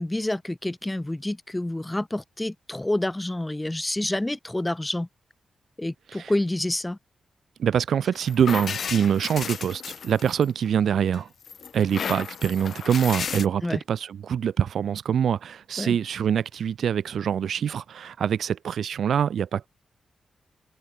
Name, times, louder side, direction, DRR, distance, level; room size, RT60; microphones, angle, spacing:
voice 1, 0.0-5.1 5.8-7.0 13.6-13.8 15.8-16.0, left 1 dB, 15° left, 5.9 m, -28 dB
voice 2, 7.6-11.3 11.7-19.7, right 8 dB, 80° right, 1.1 m, -24 dB
sound 1, 8.1-10.7 11.1-13.5, left 7 dB, 70° left, 2.7 m, -33 dB
cardioid pair, 55°, 0 cm